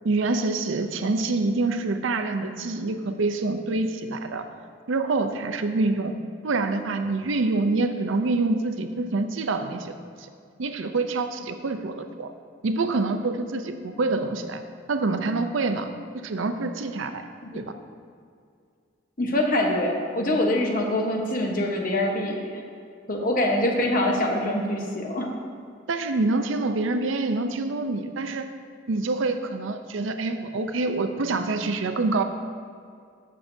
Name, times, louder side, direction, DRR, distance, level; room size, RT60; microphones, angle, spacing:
voice 1, 0.0-4.5 4.9-6.1 6.4-10.3 10.6-12.3 12.6-14.6 14.9-15.9 16.2-17.2 17.5-17.6 25.9-28.5 28.9-32.2, right 3 dB, 75° right, 8 dB, 0.6 m, -26 dB
voice 2, 19.2-22.6 23.1-25.3, left 1 dB, 45° left, 0 dB, 1.1 m, -24 dB
14.0 x 6.4 x 2.7 m, 2.3 s
head